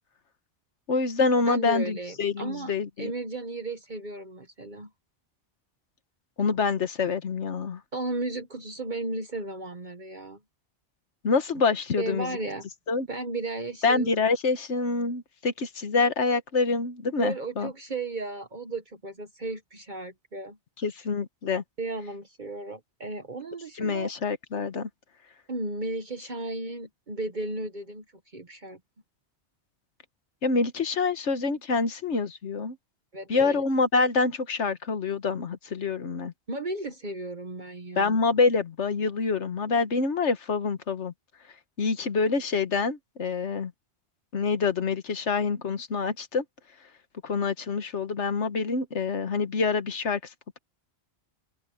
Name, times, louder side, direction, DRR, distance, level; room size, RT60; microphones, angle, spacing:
voice 1, 0.9-3.1 6.4-7.8 11.2-12.4 12.9-13.1 13.8-17.7 20.8-21.6 23.8-24.9 30.4-32.8 33.3-36.3 38.0-41.1 41.8-43.7 44.3-46.4 47.2-50.2, left 4 dB, 85° left, 1.6 m, -26 dB
voice 2, 1.5-2.7 3.0-4.9 7.9-10.4 12.0-12.7 13.1-14.1 17.2-20.6 21.8-24.1 25.5-28.0 28.3-28.8 33.1-33.6 36.5-38.2, right 2 dB, 45° right, 1.4 m, -34 dB
open air
omnidirectional pair, 1.1 m